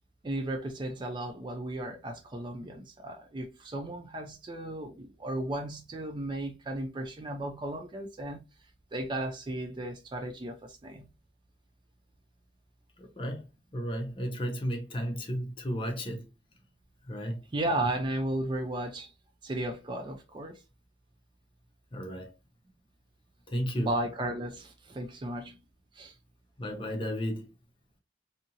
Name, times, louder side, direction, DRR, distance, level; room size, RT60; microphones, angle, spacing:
voice 1, 0.2-8.4 8.9-11.1 17.5-19.1 19.4-20.6 23.8-25.6 25.9-26.1, right 1 dB, 25° right, 0.3 m, -35 dB
voice 2, 13.0-13.4 13.7-16.2 17.1-17.4 21.9-22.3 23.5-23.9 26.6-27.5, equal, 30° left, 0.6 m, -33 dB
2.7 x 2.5 x 2.7 m
head